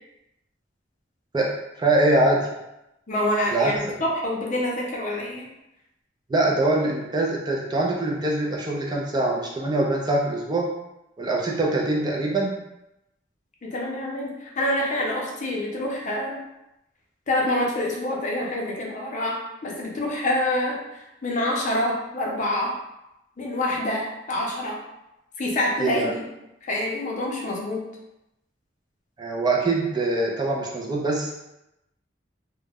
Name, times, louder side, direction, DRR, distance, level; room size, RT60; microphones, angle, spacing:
voice 1, 1.8-2.5 3.5-3.9 6.3-10.7 11.2-12.5 25.8-26.1 29.2-31.3, right 2 dB, 25° right, -2 dB, 0.4 m, -23 dB
voice 2, 3.1-5.5 13.6-16.4 17.3-20.8 21.2-22.7 23.4-24.8 25.4-26.2 26.7-27.9, left 1 dB, 45° left, -2 dB, 0.5 m, -26 dB
2.3 x 2.1 x 3.4 m, 0.89 s
head